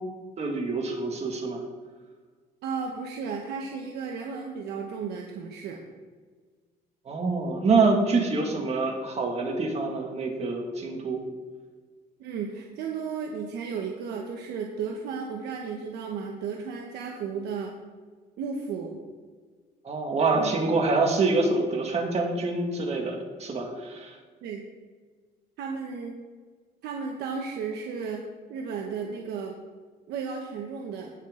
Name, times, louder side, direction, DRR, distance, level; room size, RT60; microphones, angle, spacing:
voice 1, 0.4-1.6 7.1-11.2 19.8-24.1, right 3 dB, 40° right, 1 dB, 2.1 m, -26 dB
voice 2, 2.6-5.8 12.2-17.7 18.4-19.0 20.3-20.5 24.4-24.6 25.6-26.1 26.8-29.5 30.1-31.1, right 5 dB, 75° right, 1 dB, 1.1 m, -34 dB
17.0 x 5.9 x 3.8 m, 1.5 s
cardioid pair, 110°, 17 cm